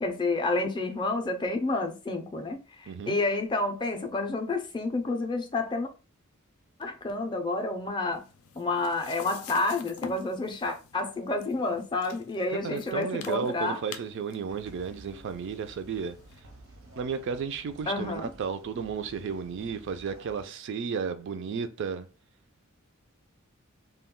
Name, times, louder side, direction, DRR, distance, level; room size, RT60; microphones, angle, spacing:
voice 1, 0.0-5.9 6.8-8.2 8.6-13.8 17.9-18.3, left 2 dB, 20° left, 0.4 m, -29 dB
voice 2, 2.9-3.2 12.6-16.2 17.0-22.1, right 6 dB, 60° right, 0.3 m, -33 dB
sound 1, 8.1-16.4, left 6 dB, 80° left, 0.4 m, -46 dB
sound 2, 14.5-20.5, right 1 dB, 85° right, 0.7 m, -52 dB
2.3 x 2.2 x 3.6 m
head